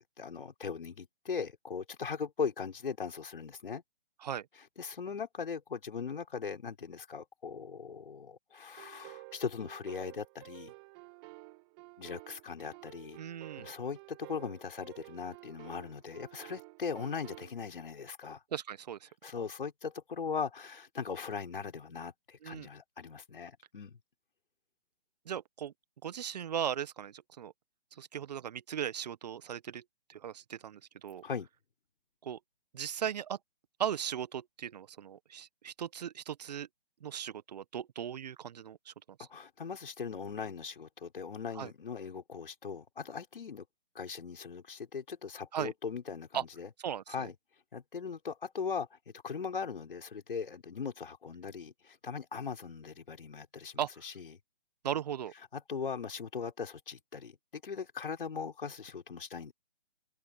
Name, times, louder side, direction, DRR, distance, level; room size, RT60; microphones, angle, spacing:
voice 1, 0.0-3.8 4.8-10.7 12.0-13.2 13.6-18.4 19.2-24.0 31.2-31.5 39.2-43.7 43.9-46.7 47.1-47.3 47.7-54.4 55.5-59.5, left 6 dB, 60° left, 5.6 m, -39 dB
sound 1, 8.8-17.5, right 29 dB, 25° right, 2.8 m, -52 dB
voice 2, 13.2-13.7 18.5-19.1 22.4-22.7 25.2-25.7 26.0-27.5 27.9-29.8 30.1-31.2 32.2-32.4 32.7-33.4 33.8-36.7 37.0-38.9 39.2-39.3 41.5-41.7 45.5-45.7 46.3-46.4 46.8-47.3 53.8-54.0 54.8-55.3, right 9 dB, 40° right, 1.4 m, -37 dB
open air
figure-of-eight pair, 140°, 31 cm